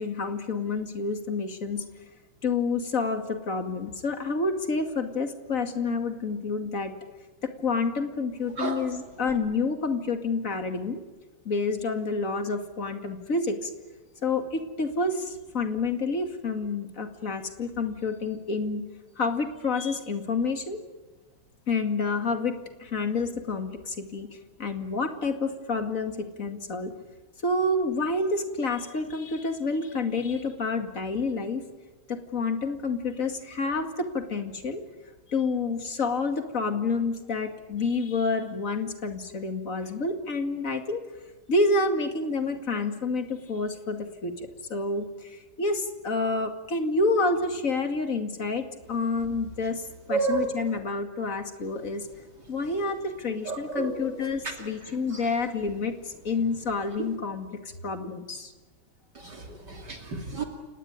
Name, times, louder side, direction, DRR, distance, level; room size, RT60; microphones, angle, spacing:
voice 1, 0.0-1.8 2.4-6.9 7.4-11.0 11.4-13.7 14.2-18.8 19.2-20.8 21.7-24.3 24.6-26.9 27.4-31.6 32.1-34.8 35.3-41.0 41.5-44.3 44.7-52.1 52.5-58.5, left 3 dB, 40° left, 6 dB, 2.6 m, -29 dB
voice 2, 50.1-50.4 53.5-54.1 59.2-60.4, right 3 dB, 55° right, 3 dB, 3.3 m, -30 dB
29.5 x 18.5 x 9.5 m, 1.2 s
omnidirectional pair, 2.2 m